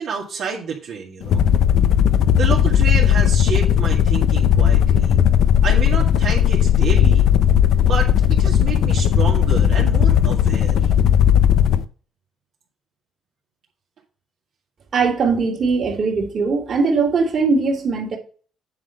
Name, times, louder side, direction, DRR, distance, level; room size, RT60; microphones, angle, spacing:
voice 1, 0.0-1.4 2.3-5.1 5.6-7.3 7.8-8.1 8.4-10.8, right 6 dB, 70° right, -4 dB, 2.2 m, -28 dB
sound 1, 1.2-11.9, left 9 dB, 80° left, 0.6 m, -16 dB
voice 2, 14.9-18.2, right 4 dB, 55° right, 2 dB, 2.9 m, -20 dB
9.4 x 4.0 x 6.6 m, 0.39 s
cardioid pair, 90°, 0 cm